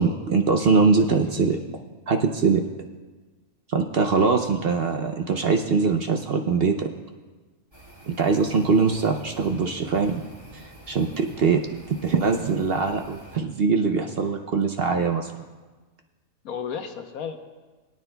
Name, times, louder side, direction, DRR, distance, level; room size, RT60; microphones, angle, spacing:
voice 1, 0.0-1.6 2.1-2.6 3.7-6.9 8.1-10.2 10.5-11.6 12.0-15.3, right 4 dB, 60° right, 4 dB, 0.7 m, -22 dB
voice 2, 1.1-1.6 16.4-17.4, left 7 dB, 80° left, 6 dB, 1.3 m, -34 dB
sound 1, 7.7-13.4, right 1 dB, 20° right, 1.7 m, -48 dB
22.0 x 9.7 x 2.2 m, 1.3 s
omnidirectional pair, 1.5 m